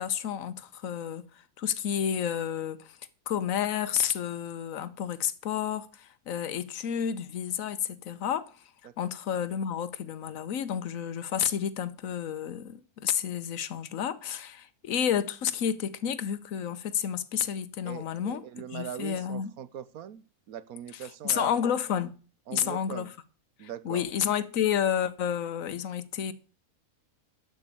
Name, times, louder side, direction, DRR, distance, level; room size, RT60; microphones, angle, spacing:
voice 1, 0.0-2.9 3.3-8.5 9.0-18.4 18.7-19.5 21.2-22.1 22.5-23.1 23.6-26.3, left 9 dB, 70° left, 1.3 m, -30 dB
voice 2, 17.8-21.5 22.5-23.1 23.6-24.1, right 10 dB, 85° right, 1.3 m, -41 dB
12.0 x 5.4 x 8.4 m
omnidirectional pair, 1.5 m